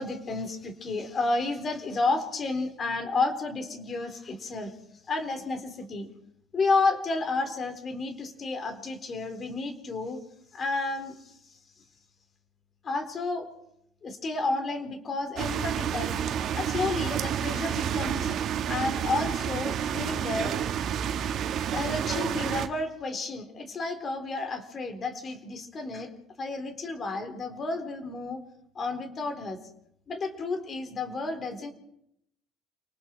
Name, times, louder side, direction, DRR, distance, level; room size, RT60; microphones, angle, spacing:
voice 1, 0.0-4.7 5.1-6.1 6.5-10.2 10.5-11.6 12.8-13.5 14.0-16.1 16.5-18.4 18.7-20.5 21.7-26.1 26.4-28.4 28.7-29.6 30.1-31.7, left 3 dB, 35° left, 6 dB, 4.2 m, -31 dB
sound 1, 15.4-22.7, right 9 dB, 55° right, 1.8 m, -29 dB
29.0 x 19.5 x 4.7 m, 0.76 s
supercardioid pair, 105°, 0 cm